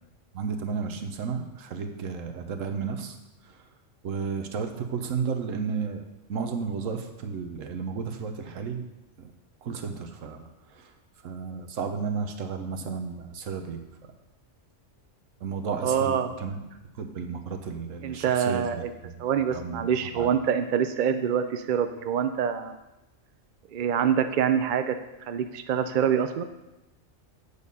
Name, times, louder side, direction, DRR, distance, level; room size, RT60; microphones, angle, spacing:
voice 1, 0.3-3.2 4.0-6.0 6.3-8.8 9.2-9.3 9.6-10.9 11.2-13.8 15.4-16.6 17.0-19.2 19.5-20.3, right 5 dB, 85° right, 5 dB, 1.3 m, -33 dB
voice 2, 15.8-16.3 18.0-18.9 19.2-22.8 23.7-25.0 25.3-26.4, right 8 dB, 65° right, 9 dB, 0.5 m, -25 dB
8.3 x 6.7 x 5.4 m, 0.99 s
omnidirectional pair, 1.3 m